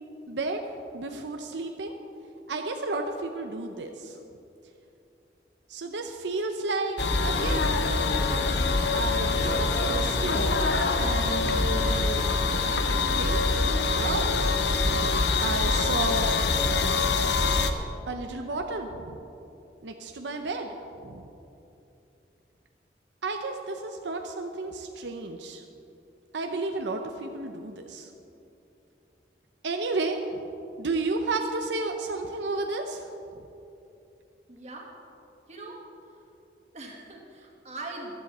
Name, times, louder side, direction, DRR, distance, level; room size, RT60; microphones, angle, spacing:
voice 1, 0.3-0.6 0.9-1.9 2.5-4.2 5.7-7.0 7.2-7.8 8.2-8.4 8.9-10.5 11.0-12.2 13.1-13.6 14.0-14.5 15.4-16.3 18.1-19.2 19.8-21.3 23.2-25.6 26.3-28.1 29.6-30.4 30.8-33.1, right 3 dB, 85° right, 4 dB, 0.8 m, -32 dB
sound 1, 7.0-17.7, left 3 dB, 75° left, 0.9 m, -25 dB
voice 2, 34.5-34.9 35.5-35.8 36.7-38.2, right 2 dB, 40° right, -1 dB, 2.1 m, -41 dB
14.5 x 12.5 x 4.3 m, 2.8 s
head